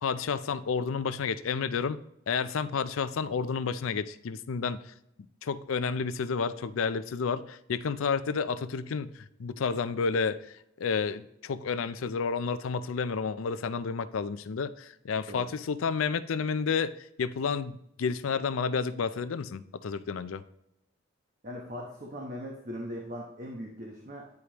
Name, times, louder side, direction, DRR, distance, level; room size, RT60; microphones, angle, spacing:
voice 1, 0.0-2.0 2.3-4.9 5.4-20.4, left 5 dB, 85° left, 14 dB, 0.4 m, -31 dB
voice 2, 21.4-24.3, equal, 45° right, -1 dB, 1.0 m, -39 dB
9.6 x 4.9 x 3.0 m, 0.79 s
head